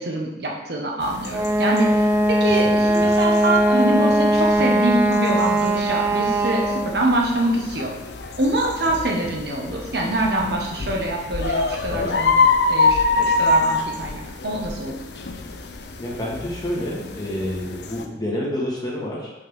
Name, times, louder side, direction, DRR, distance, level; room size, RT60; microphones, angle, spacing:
voice 1, 0.0-7.9 8.4-12.3 12.7-15.0, right 1 dB, 60° right, -1 dB, 1.2 m, -25 dB
sound 1, 1.0-18.0, left 3 dB, 65° left, 0.6 m, -26 dB
Wind instrument woodwind instrument, 1.3-7.0, right 1 dB, 10° right, 0.4 m, -19 dB
voice 2, 2.5-3.1 11.9-12.2 16.0-19.3, left 1 dB, 20° left, -5 dB, 1.7 m, -29 dB
5.4 x 5.4 x 5.5 m, 1.0 s
head